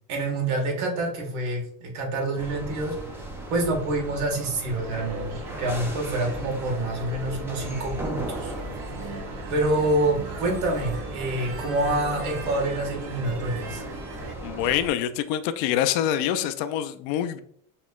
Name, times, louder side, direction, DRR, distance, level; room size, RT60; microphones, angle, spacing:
voice 1, 0.1-3.1 3.5-8.5 9.5-13.8, right 2 dB, 75° right, 0 dB, 1.6 m, -27 dB
sound 1, 2.4-14.9, right 1 dB, 5° right, 0.3 m, -37 dB
sound 2, 4.7-14.3, right 2 dB, 50° right, 1.0 m, -39 dB
voice 2, 14.4-17.4, left 10 dB, 55° left, 8 dB, 0.5 m, -25 dB
6.1 x 3.1 x 2.3 m, 0.64 s
supercardioid pair, 140°, 43 cm